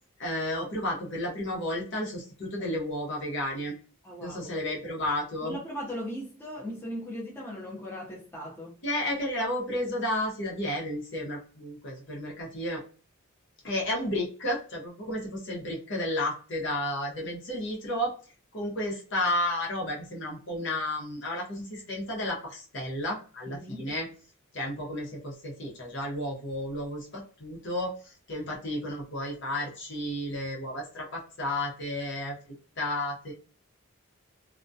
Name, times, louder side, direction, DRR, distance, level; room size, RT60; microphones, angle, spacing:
voice 1, 0.2-3.7 4.2-5.6 8.8-12.8 13.6-18.1 18.5-24.1 24.5-32.4 32.8-33.3, left 1 dB, 55° left, 0.8 m, -32 dB
voice 2, 4.0-4.5 5.4-8.8 23.5-23.9, equal, 10° left, 0.6 m, -38 dB
2.2 x 2.1 x 2.6 m
head